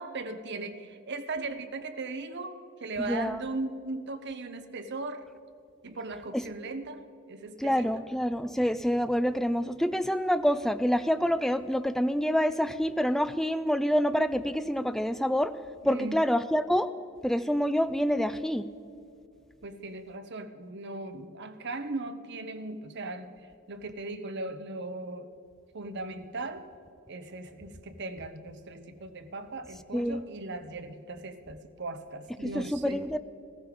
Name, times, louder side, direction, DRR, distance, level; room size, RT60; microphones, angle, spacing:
voice 1, 0.0-5.3 5.8-7.9 15.8-16.2 19.6-23.3 23.7-25.3 25.7-26.6 27.1-33.0, right 2 dB, 55° right, 9 dB, 0.9 m, -38 dB
voice 2, 3.0-3.4 6.3-6.4 7.6-15.6 15.8-16.9 17.2-18.7 29.9-30.2 32.4-33.2, equal, ahead, 12 dB, 0.3 m, -27 dB
14.5 x 14.5 x 5.1 m, 2.6 s
head